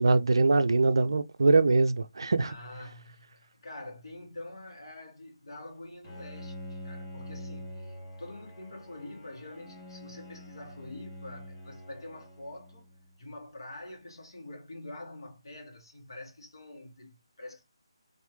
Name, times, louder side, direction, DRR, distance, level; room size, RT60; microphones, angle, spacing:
voice 1, 0.0-2.5, right 3 dB, 55° right, 0.5 m, -23 dB
voice 2, 2.4-12.9 13.2-17.6, left 2 dB, 55° left, 2.1 m, -46 dB
Bowed string instrument, 6.0-13.1, left 1 dB, 20° left, 1.2 m, -45 dB
4.5 x 3.2 x 3.1 m
figure-of-eight pair, 150°, 3 cm